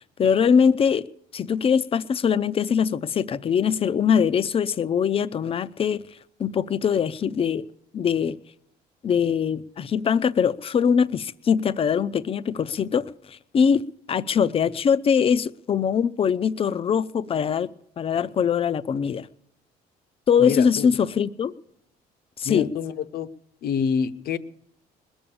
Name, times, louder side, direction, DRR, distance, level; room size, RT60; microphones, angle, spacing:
voice 1, 0.2-1.1 1.3-6.0 6.4-7.6 7.9-8.4 9.0-13.8 14.1-17.7 18.0-19.3 20.3-21.5 22.4-22.7, left 7 dB, 35° left, 0.5 m, -22 dB
voice 2, 20.4-20.9 22.4-23.3 23.6-24.4, left 7 dB, 65° left, 0.9 m, -26 dB
20.5 x 7.1 x 8.7 m
cardioid pair, 110°, 17 cm